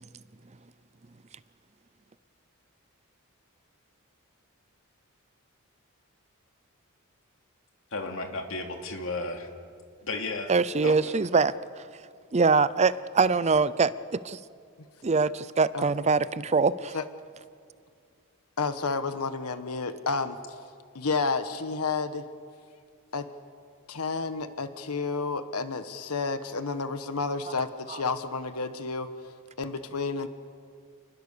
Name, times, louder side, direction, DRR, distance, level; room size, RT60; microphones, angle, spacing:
voice 1, 7.9-9.5 10.0-10.5 10.8-10.9, left 2 dB, 65° left, 3 dB, 2.8 m, -33 dB
voice 2, 10.5-11.5 12.3-14.4 15.0-17.0 27.9-28.0, right 4 dB, 30° right, 17 dB, 0.5 m, -23 dB
voice 3, 18.6-20.4 20.9-22.3 23.1-23.3 23.9-29.1 29.6-30.3, left 4 dB, 90° left, 10 dB, 1.2 m, -30 dB
29.0 x 21.0 x 6.8 m, 2.3 s
head